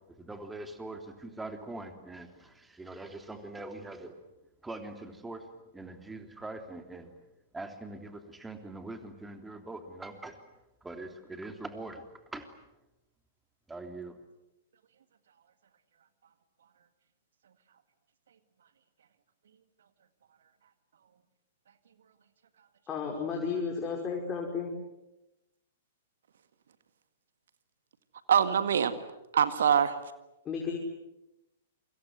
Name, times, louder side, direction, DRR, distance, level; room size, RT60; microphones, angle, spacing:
voice 1, 0.0-4.2 4.6-7.2 7.5-10.5 10.8-12.7 13.7-14.2, right 2 dB, 10° right, 6 dB, 3.2 m, -43 dB
voice 2, 22.9-24.8 30.5-30.8, left 5 dB, 25° left, 0 dB, 5.1 m, -33 dB
voice 3, 28.3-29.0 29.3-30.0, right 8 dB, 65° right, 11 dB, 1.8 m, -24 dB
28.5 x 25.5 x 7.9 m, 0.94 s
figure-of-eight pair, 110°, 0 cm